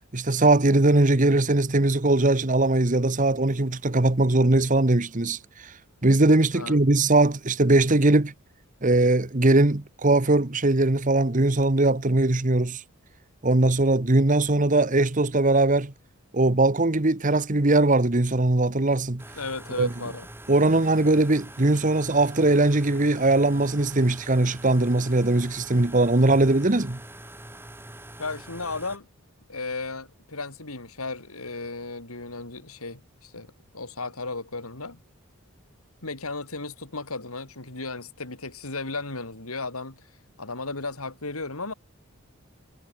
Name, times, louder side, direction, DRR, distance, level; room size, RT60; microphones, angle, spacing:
voice 1, 0.1-5.4 6.0-8.3 8.8-12.8 13.4-15.9 16.3-19.2 19.8-19.9 20.5-27.0, right 2 dB, 35° right, 1.2 m, -20 dB
sound 1, 19.2-29.0, right 1 dB, 10° right, 6.4 m, -44 dB
voice 2, 19.3-20.3 28.2-29.1 29.5-35.0 36.0-40.1 40.4-41.7, left 3 dB, 85° left, 4.2 m, -35 dB
head